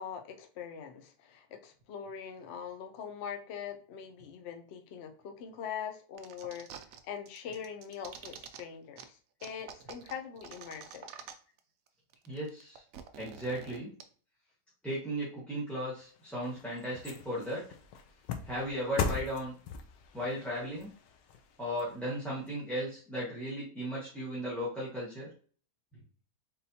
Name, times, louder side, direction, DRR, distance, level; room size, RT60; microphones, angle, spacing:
voice 1, 0.0-6.7 7.0-11.1, left 7 dB, 65° left, 5 dB, 0.6 m, -42 dB
sound 1, 6.2-7.0 7.3-8.6 9.0-9.1 9.4-11.6 11.9-12.0 12.1-14.0, right 7 dB, 70° right, 0.8 m, -48 dB
voice 2, 12.3-12.8 13.2-13.9 14.8-17.7 18.4-19.5 20.1-20.9 21.6-25.3, equal, ahead, -8 dB, 1.2 m, -36 dB
sound 2, 16.0-22.5 22.9-23.0, left 6 dB, 85° left, 1.3 m, -40 dB
3.9 x 3.7 x 2.8 m, 0.42 s
omnidirectional pair, 1.8 m